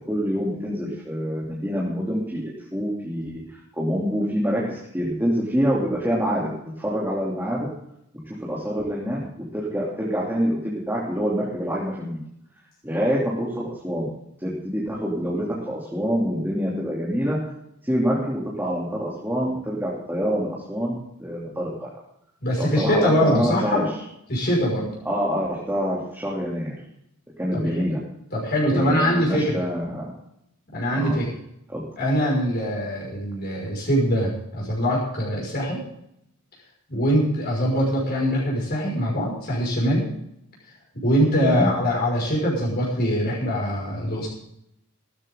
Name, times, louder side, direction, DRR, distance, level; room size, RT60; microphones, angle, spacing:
voice 1, 0.1-3.4 3.7-7.7 8.3-12.2 12.8-14.1 14.4-17.4 17.8-21.9 22.6-23.9 25.0-26.7 27.4-28.0 28.7-30.1 30.9-31.2 31.7-31.8 41.4-41.7, equal, 10° right, -5 dB, 3.1 m, -26 dB
voice 2, 22.4-23.9 24.3-24.9 27.5-27.6 28.3-29.6 30.7-31.3 32.0-35.8 36.9-40.1 40.9-44.3, equal, 45° left, -4 dB, 5.7 m, -23 dB
16.5 x 13.5 x 3.8 m, 0.77 s
head